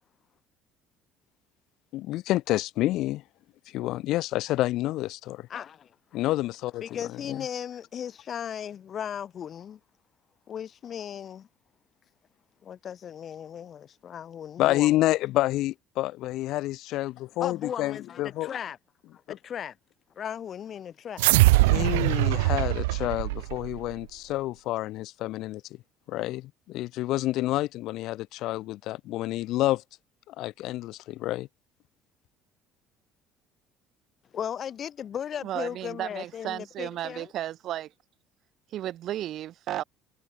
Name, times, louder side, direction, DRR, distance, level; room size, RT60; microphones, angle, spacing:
voice 1, 1.9-3.2 3.7-5.5 6.1-7.0 7.3-7.4 14.6-18.5 19.3-19.4 21.5-25.6 26.1-29.8 30.3-31.5, left 16 dB, 70° left, 3.8 m, -28 dB
voice 2, 5.5-5.9 6.8-9.8 10.5-11.5 12.6-15.0 17.4-18.8 19.1-19.8 20.1-21.3 34.3-37.3, left 9 dB, 50° left, 3.0 m, -36 dB
sound 1, 21.2-23.9, right 21 dB, 90° right, 0.4 m, -22 dB
voice 3, 35.4-37.9 38.7-39.8, right 12 dB, 60° right, 2.7 m, -34 dB
supercardioid pair, 75°, 0 cm